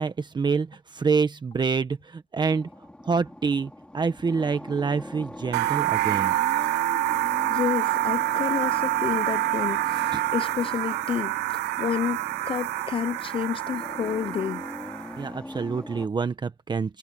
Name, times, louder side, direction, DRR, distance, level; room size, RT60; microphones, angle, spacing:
voice 1, 0.0-2.7 3.0-6.3 10.1-10.2 15.2-17.0, right 5 dB, 25° right, 1.2 m, -27 dB
sound 1, 2.4-16.1, left 1 dB, 5° left, 3.9 m, -41 dB
sound 2, 5.5-15.2, right 19 dB, 85° right, 0.4 m, -27 dB
voice 2, 7.5-14.7, left 8 dB, 30° left, 0.4 m, -30 dB
cardioid pair, 110°, 17 cm